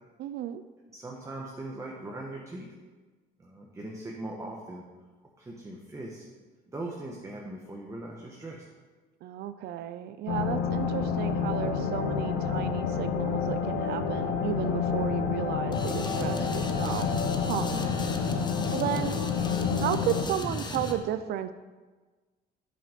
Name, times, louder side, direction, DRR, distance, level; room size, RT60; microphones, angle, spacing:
voice 1, 0.2-0.6 9.2-17.7 18.7-19.2 19.8-21.5, right 11 dB, 70° right, 12 dB, 0.5 m, -33 dB
voice 2, 0.9-2.7 3.4-4.8 5.4-6.2 6.7-8.6 17.6-17.8, right 2 dB, 15° right, -2 dB, 1.3 m, -40 dB
sound 1, 10.3-20.3, left 6 dB, 90° left, 1.0 m, -29 dB
sound 2, 15.7-21.0, left 3 dB, 25° left, 1.1 m, -35 dB
7.8 x 7.6 x 5.1 m, 1.3 s
cardioid pair, 110°, 17 cm